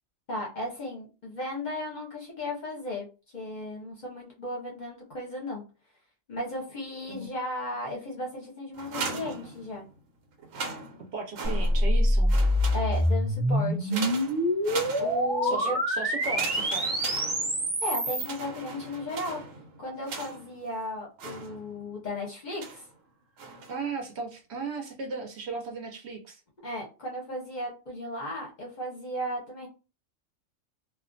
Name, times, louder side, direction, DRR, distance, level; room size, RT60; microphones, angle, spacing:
voice 1, 0.3-3.1 3.3-5.6 6.3-9.8 12.7-14.0 15.0-15.8 17.8-19.4 19.8-22.9 26.6-29.7, left 1 dB, 45° left, 0.7 m, -35 dB
sound 1, 8.7-10.0 10.4-12.0 12.3-13.2 13.9-15.5 16.2-17.8 18.2-20.6 21.2-21.9 22.6-22.9 23.4-23.9, right 4 dB, 90° right, 1.0 m, -39 dB
voice 2, 11.1-12.3 15.4-17.0 23.7-26.4, right 4 dB, 65° right, 0.8 m, -36 dB
sound 2, 11.4-18.3, equal, 35° right, 0.4 m, -26 dB
2.4 x 2.2 x 2.5 m
omnidirectional pair, 1.3 m